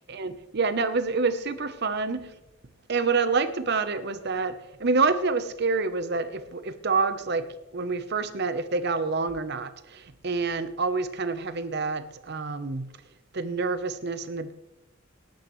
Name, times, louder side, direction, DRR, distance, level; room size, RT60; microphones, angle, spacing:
voice 1, 0.1-2.3 2.9-7.5 7.7-12.9 13.3-14.5, right 4 dB, 55° right, 0.9 m, -27 dB
19.0 x 11.5 x 3.2 m
head